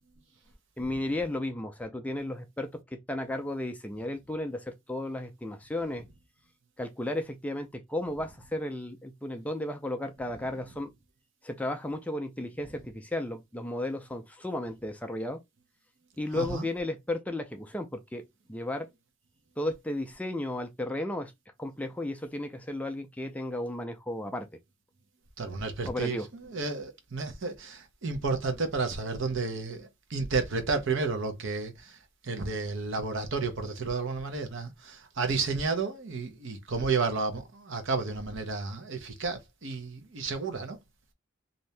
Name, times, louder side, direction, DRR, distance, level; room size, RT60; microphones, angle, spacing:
voice 1, 0.8-6.0 6.8-10.9 11.4-15.4 16.2-18.2 18.5-18.9 19.6-21.3 21.6-24.5 25.8-26.3, left 1 dB, 5° left, 0.3 m, -34 dB
voice 2, 16.3-16.6 25.4-32.0 32.2-40.8, right 4 dB, 60° right, 0.8 m, -32 dB
2.7 x 2.6 x 3.2 m
head